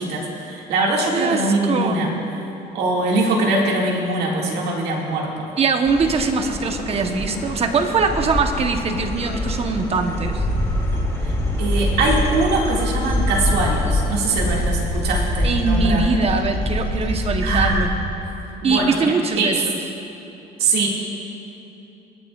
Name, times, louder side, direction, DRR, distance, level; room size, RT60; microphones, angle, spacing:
voice 1, 0.0-2.1 2.7-5.4 11.6-16.0 17.4-18.0 18.6-19.6 20.6-20.9, right 2 dB, 75° right, -2 dB, 2.0 m, -22 dB
voice 2, 1.1-2.0 5.6-10.4 15.4-17.9 18.6-19.6, right 4 dB, 35° right, 5 dB, 1.0 m, -22 dB
sound 1, 5.9-17.9, left 1 dB, 15° left, 2.3 m, -24 dB
26.0 x 8.8 x 2.4 m, 2.9 s
cardioid pair, 110°, 17 cm